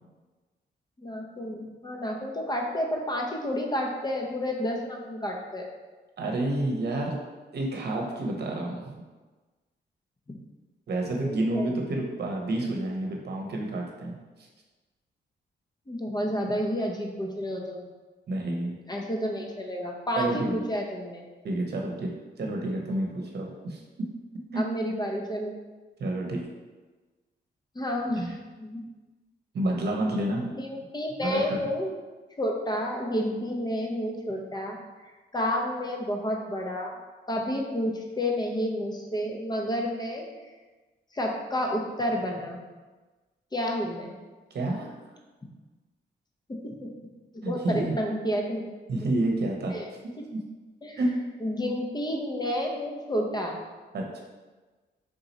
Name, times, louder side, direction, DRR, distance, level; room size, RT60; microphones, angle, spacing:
voice 1, 1.0-5.7 10.3-10.4 11.2-11.8 15.9-17.9 18.9-21.2 24.6-25.5 27.7-28.3 28.6-28.8 30.4-31.9 32.4-34.8 35.3-37.0 37.3-40.3 41.1-42.6 43.5-44.1 46.5-46.9 47.5-48.6 49.7-49.8 50.8-51.0 51.4-53.6, equal, 20° left, 1 dB, 0.7 m, -30 dB
voice 2, 6.2-7.2 7.5-8.8 10.9-14.2 18.3-18.7 20.2-20.6 21.4-22.1 22.4-24.1 24.5-24.6 26.0-26.4 28.2-28.3 29.5-30.5 31.2-31.6 44.5-44.9 47.4-47.9 48.9-49.8 50.3-50.4 51.0-51.2 53.9-54.2, right 1 dB, 60° right, 0 dB, 0.9 m, -29 dB
3.7 x 2.9 x 4.0 m, 1.3 s
cardioid pair, 85°, 19 cm